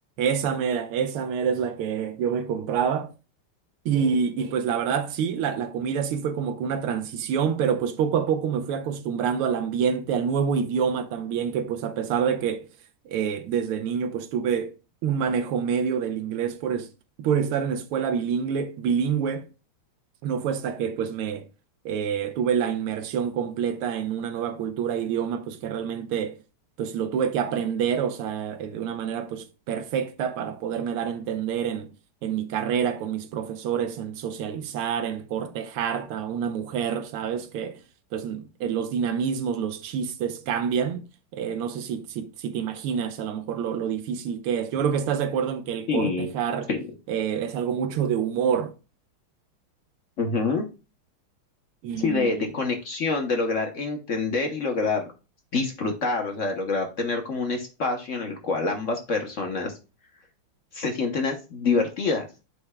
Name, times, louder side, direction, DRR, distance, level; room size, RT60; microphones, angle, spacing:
voice 1, 0.2-3.1 3.8-12.7 13.0-14.7 15.0-16.9 17.2-19.5 20.2-21.5 21.8-26.4 26.8-31.9 32.2-37.8 38.1-41.0 41.3-46.7 47.1-48.7 51.8-52.5, right 7 dB, 85° right, 1.6 m, -27 dB
voice 2, 45.9-46.3 46.7-46.8 50.2-50.7 52.0-55.1 55.5-59.8 60.7-62.2, left 4 dB, 55° left, 0.9 m, -26 dB
11.5 x 4.5 x 2.2 m
omnidirectional pair, 2.4 m